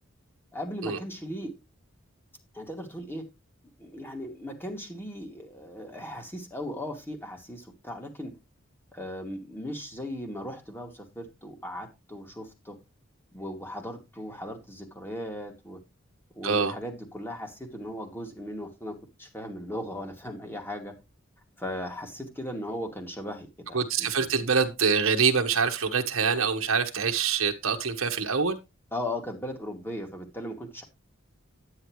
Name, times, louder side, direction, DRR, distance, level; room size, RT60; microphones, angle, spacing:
voice 1, 0.5-1.5 2.5-3.2 3.8-8.3 8.9-12.8 13.3-15.8 16.4-20.9 21.6-24.3 28.9-30.8, left 1 dB, 10° left, 2.4 m, -37 dB
voice 2, 23.7-28.6, right 5 dB, 75° right, 1.3 m, -25 dB
9.9 x 9.7 x 3.2 m
head